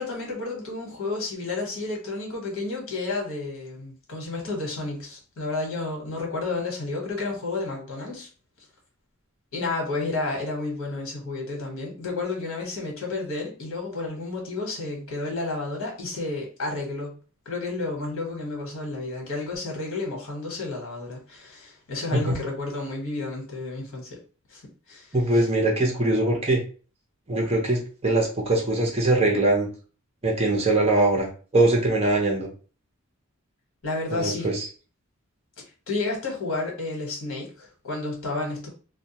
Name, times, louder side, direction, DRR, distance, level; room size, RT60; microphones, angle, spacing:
voice 1, 0.0-8.3 9.5-17.2 17.4-24.2 24.5-24.6 24.9-25.4 33.8-34.5 35.9-38.7, left 3 dB, 85° left, 1.1 m, -31 dB
voice 2, 25.1-26.6 27.3-29.7 30.2-31.3 31.5-32.5 34.1-34.7, right 2 dB, 30° right, 0.7 m, -22 dB
2.2 x 2.2 x 2.9 m
head